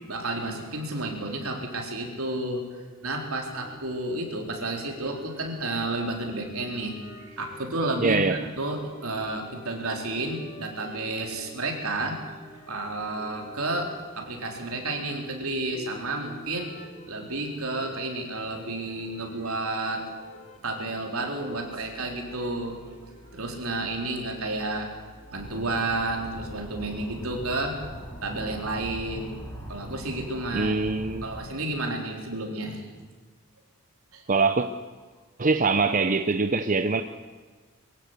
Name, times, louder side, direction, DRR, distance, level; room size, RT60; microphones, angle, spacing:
voice 1, 0.1-2.7 3.0-8.2 8.6-12.2 12.7-16.7 17.1-20.0 20.6-22.8 23.3-24.9 25.3-27.8 28.2-29.3 29.7-30.7 31.2-32.9 34.1-34.2, right 2 dB, 75° right, 4.0 m, -31 dB
sound 1, 3.5-23.5, left 1 dB, 35° left, 4.0 m, -49 dB
voice 2, 8.0-8.4 30.5-31.3 34.3-34.7 35.4-37.0, right 4 dB, 40° right, 0.7 m, -23 dB
sound 2, 21.0-28.1, left 1 dB, 60° left, 4.8 m, -49 dB
sound 3, 25.3-31.5, equal, 10° left, 4.9 m, -41 dB
23.0 x 16.0 x 8.1 m
head